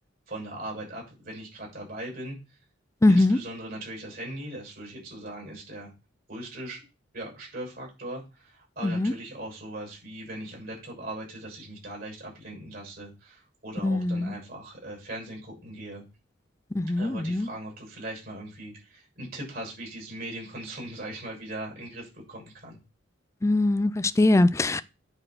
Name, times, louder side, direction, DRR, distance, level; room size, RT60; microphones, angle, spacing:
voice 1, 0.3-2.4 3.1-5.9 6.3-6.8 7.1-16.0 17.0-22.8, right 1 dB, 50° right, 6.7 m, -39 dB
voice 2, 3.0-3.4 8.8-9.1 13.8-14.3 16.8-17.5 23.4-24.8, left 2 dB, 15° left, 0.4 m, -22 dB
10.0 x 4.4 x 5.9 m
head